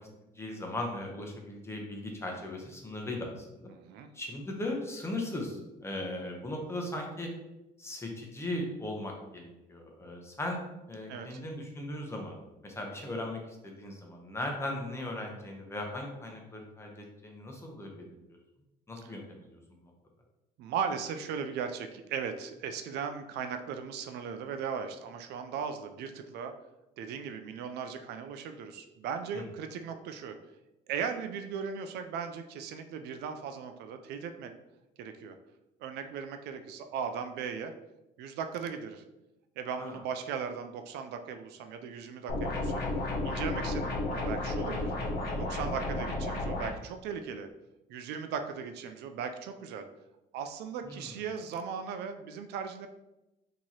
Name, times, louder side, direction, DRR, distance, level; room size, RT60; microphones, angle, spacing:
voice 1, 0.3-3.7 4.1-7.3 7.8-10.6 10.9-12.4 12.6-18.2 18.9-19.6 29.3-29.4 39.8-40.0 50.8-51.2, left 1 dB, 15° left, 1 dB, 0.9 m, -38 dB
voice 2, 3.7-4.1 11.1-11.4 19.0-19.1 20.6-26.5 27.0-30.4 30.9-34.5 35.0-35.4 35.8-37.7 38.2-39.0 39.6-42.9 43.2-44.9 45.4-47.5 47.9-49.9 50.3-52.9, right 6 dB, 80° right, 7 dB, 0.4 m, -37 dB
sound 1, 42.3-46.7, left 2 dB, 70° left, 1.0 m, -32 dB
4.4 x 3.0 x 2.9 m, 0.95 s
cardioid pair, 110°, 17 cm